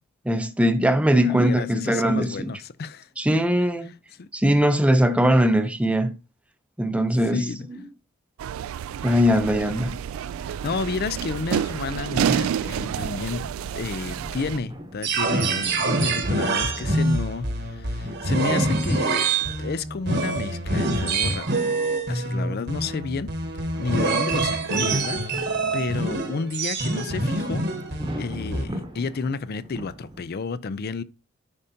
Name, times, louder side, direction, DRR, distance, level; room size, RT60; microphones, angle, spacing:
voice 1, 0.3-2.5 3.2-3.9 4.3-6.2 6.8-7.8 9.0-10.0, equal, 5° right, 0.6 m, -21 dB
voice 2, 1.1-3.1 4.2-4.3 7.3-7.7 10.4-13.4 13.7-19.3 19.6-21.5 22.1-23.3 23.8-27.6 28.2-31.0, left 4 dB, 50° left, 0.5 m, -31 dB
sound 1, 8.4-14.6, right 9 dB, 80° right, 0.3 m, -29 dB
sound 2, 10.3-30.2, equal, 20° right, 1.0 m, -42 dB
sound 3, 15.0-28.6, right 2 dB, 55° right, 1.2 m, -25 dB
9.8 x 5.1 x 2.7 m
head